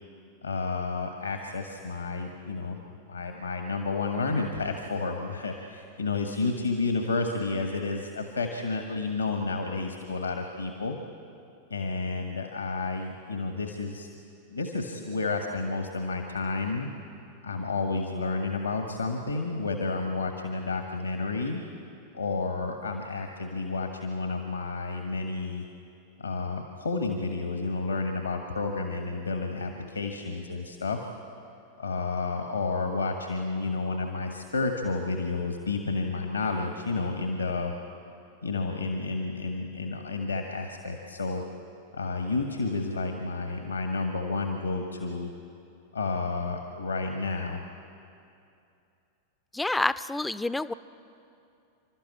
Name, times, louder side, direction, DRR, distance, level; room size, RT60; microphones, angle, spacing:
voice 1, 0.4-2.8 3.1-11.0 11.7-14.1 14.5-16.9 17.4-21.6 22.1-25.6 26.2-31.0 31.8-37.7 38.4-41.4 41.9-45.3 45.9-47.6, left 3 dB, 80° left, 4 dB, 1.4 m, -31 dB
voice 2, 49.5-50.7, left 2 dB, 5° left, 15 dB, 0.5 m, -28 dB
29.5 x 12.5 x 8.5 m, 2.7 s
figure-of-eight pair, 90°, 0 cm